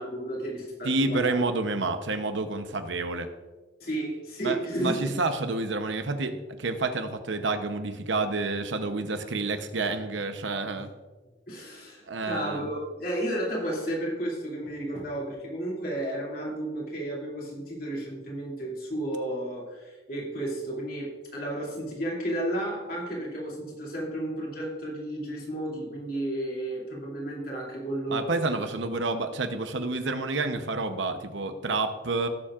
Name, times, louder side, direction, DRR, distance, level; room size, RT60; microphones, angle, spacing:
voice 1, 0.0-1.4 3.8-5.1 11.5-28.4, right 1 dB, 50° left, -4 dB, 2.8 m, -32 dB
voice 2, 0.8-3.3 4.4-10.9 12.1-12.7 28.1-32.3, right 3 dB, 80° right, 8 dB, 0.9 m, -29 dB
17.5 x 7.3 x 2.5 m, 1.2 s
head